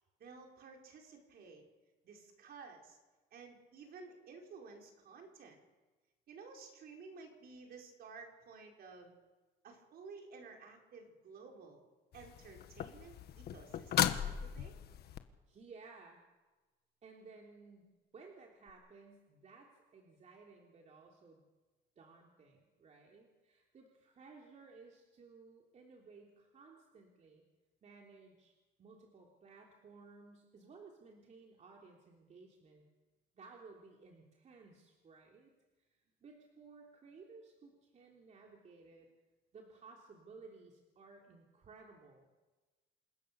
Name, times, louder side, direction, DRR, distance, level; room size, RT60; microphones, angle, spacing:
voice 1, 0.2-1.6 2.0-3.0 3.3-5.6 6.3-9.2 9.6-11.8 12.1-14.7, right 4 dB, 55° right, 2 dB, 5.2 m, -54 dB
sound 1, 12.1-15.2 18.7-18.8, left 10 dB, 60° left, 1.5 m, -36 dB
voice 2, 15.5-16.2 17.0-21.4 22.0-27.4 27.8-32.8 33.3-35.5 35.8-35.9 36.2-39.1 39.5-42.3, right 4 dB, 40° right, 0 dB, 3.2 m, -57 dB
27.5 x 17.0 x 7.0 m, 1.2 s
cardioid pair, 125°, 19 cm